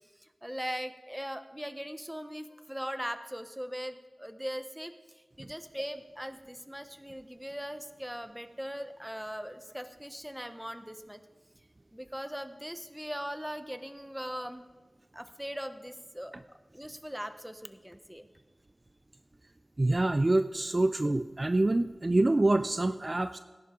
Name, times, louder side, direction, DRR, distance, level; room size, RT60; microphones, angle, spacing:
voice 1, 0.2-11.2 11.9-14.7 15.1-16.3 16.7-18.3, equal, 5° right, 10 dB, 0.9 m, -40 dB
voice 2, 19.8-23.4, right 2 dB, 40° right, 10 dB, 0.4 m, -26 dB
18.0 x 11.0 x 3.8 m, 1.3 s
wide cardioid pair, 55°, 0 cm